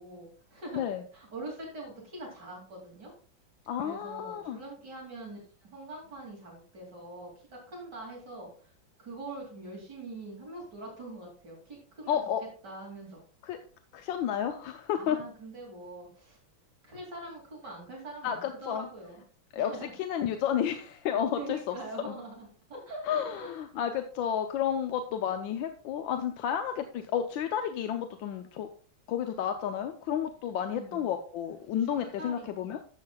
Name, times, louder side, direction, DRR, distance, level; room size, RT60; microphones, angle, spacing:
voice 1, 0.0-0.8 1.1-3.1 3.8-8.7 9.0-13.2 15.0-16.4 16.8-19.2 19.5-19.9 21.3-23.0 23.4-23.5 30.7-31.1 31.8-32.7, right 2 dB, 55° right, -2 dB, 3.2 m, -43 dB
voice 2, 3.7-4.6 12.1-12.4 13.4-13.6 13.9-15.2 18.2-18.9 19.5-21.8 22.0-22.2 23.0-28.7 29.1-32.8, left 9 dB, 80° left, 7 dB, 1.4 m, -31 dB
12.5 x 7.4 x 2.3 m, 0.42 s
omnidirectional pair, 2.1 m